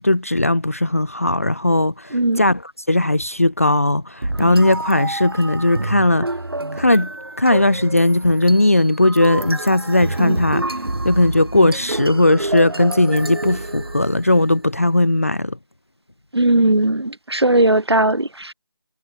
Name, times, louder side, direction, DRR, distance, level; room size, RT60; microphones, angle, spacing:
voice 1, 0.0-2.6 2.9-6.3 6.8-7.1 7.4-10.6 11.0-15.6, left 1 dB, 35° left, 0.5 m, -17 dB
voice 2, 2.1-2.4 16.3-18.5, right 1 dB, 85° right, 1.6 m, -17 dB
sound 1, 4.2-14.5, right 2 dB, 70° right, 3.3 m, -28 dB
figure-of-eight pair, 170°, 13 cm